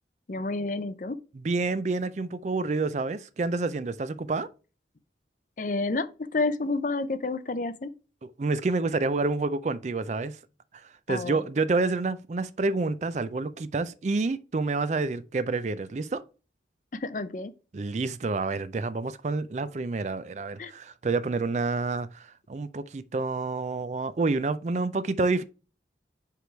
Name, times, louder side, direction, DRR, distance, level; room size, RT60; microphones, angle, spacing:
voice 1, 0.3-1.2 5.6-7.9 11.1-11.4 17.0-17.5 20.6-20.7, left 3 dB, 45° left, 0.5 m, -30 dB
voice 2, 1.3-4.5 8.2-10.4 11.1-16.2 17.7-25.4, right 3 dB, 40° right, 0.4 m, -28 dB
5.1 x 4.8 x 4.4 m
head